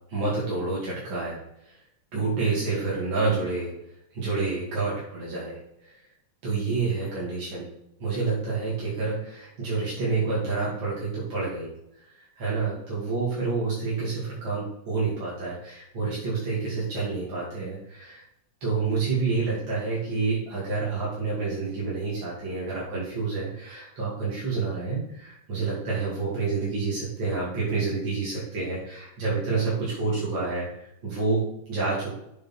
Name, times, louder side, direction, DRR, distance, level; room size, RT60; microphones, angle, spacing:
voice 1, 0.1-1.8 2.1-3.7 4.1-6.0 6.4-7.7 8.0-11.7 12.0-18.2 18.6-32.1, right 4 dB, 60° right, -7 dB, 3.2 m, -28 dB
7.4 x 7.3 x 4.4 m, 0.81 s
omnidirectional pair, 2.4 m